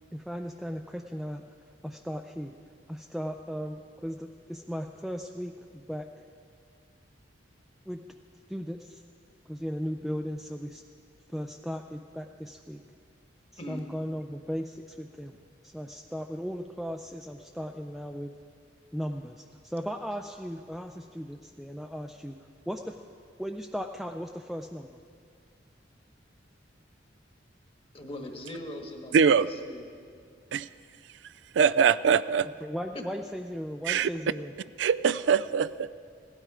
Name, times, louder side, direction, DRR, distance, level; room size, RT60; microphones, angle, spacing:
voice 1, 0.1-1.5 1.8-2.5 2.9-6.1 7.9-8.0 8.5-9.0 9.5-10.8 11.3-12.8 13.7-15.4 15.6-18.3 18.9-22.4 22.7-23.0 23.4-24.9 32.6-34.5, equal, ahead, 3 dB, 0.4 m, -36 dB
voice 2, 27.9-29.9 32.9-33.0, left 1 dB, 30° left, 3 dB, 1.4 m, -40 dB
voice 3, 29.1-29.5 30.5-30.7 31.5-32.5 33.8-34.1 34.8-35.9, right 6 dB, 75° right, 16 dB, 0.3 m, -23 dB
16.5 x 12.5 x 4.9 m, 2.2 s
head